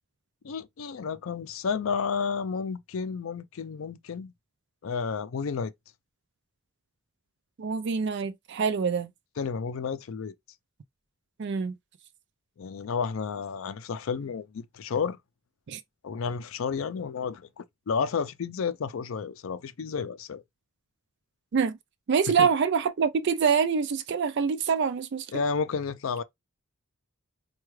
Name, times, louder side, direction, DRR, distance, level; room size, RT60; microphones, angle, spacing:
voice 1, 0.4-4.3 4.8-5.7 9.4-10.3 12.6-15.2 16.0-20.4 22.4-22.5 25.3-26.2, left 5 dB, 65° left, 0.4 m, -31 dB
voice 2, 7.6-9.1 11.4-11.7 15.7-15.8 21.5-21.7 22.1-25.3, right 6 dB, 55° right, 0.4 m, -25 dB
4.5 x 2.3 x 3.1 m
head